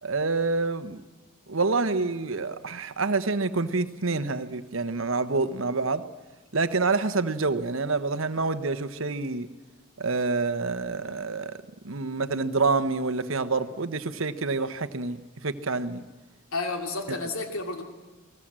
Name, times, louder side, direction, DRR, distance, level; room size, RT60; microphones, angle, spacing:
voice 1, 0.0-1.0 1.5-6.0 6.5-9.5 10.0-11.6 11.8-16.0, right 3 dB, 65° right, 12 dB, 1.1 m, -27 dB
voice 2, 16.5-17.8, left 3 dB, 75° left, 5 dB, 2.9 m, -31 dB
29.5 x 19.5 x 7.6 m, 1.2 s
head